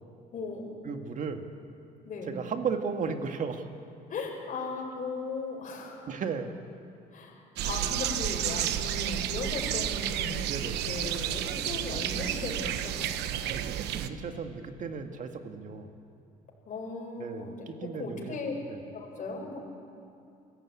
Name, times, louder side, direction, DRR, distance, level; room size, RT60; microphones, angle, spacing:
voice 1, 0.3-0.7 2.0-2.3 4.1-6.1 7.1-10.4 10.8-13.5 16.7-18.5 18.9-19.6, left 3 dB, 50° left, 0 dB, 4.5 m, -37 dB
voice 2, 0.8-1.5 2.3-3.7 6.1-6.6 10.5-10.9 13.5-15.9 17.2-18.4 18.7-18.8, right 5 dB, 50° right, 6 dB, 1.9 m, -35 dB
sound 1, 7.6-14.1, right 11 dB, 85° right, 1.0 m, -31 dB
27.0 x 15.0 x 8.6 m, 2.5 s
cardioid pair, 110°, 17 cm